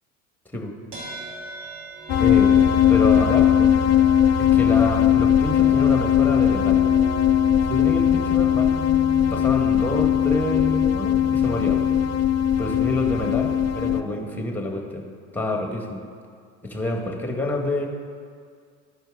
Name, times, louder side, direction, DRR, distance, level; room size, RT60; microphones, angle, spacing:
sound 1, 0.9-14.4, equal, 65° right, 2.5 m, -39 dB
sound 2, 2.1-14.0, left 10 dB, 40° left, 0.6 m, -19 dB
voice 1, 2.2-2.6 2.9-3.7 4.4-6.8 7.7-8.7 9.1-11.8 12.6-15.0 15.3-16.0 16.6-17.9, left 1 dB, 5° left, 2 dB, 1.5 m, -27 dB
13.5 x 5.1 x 3.8 m, 2.1 s
hypercardioid pair, 80°, 43 cm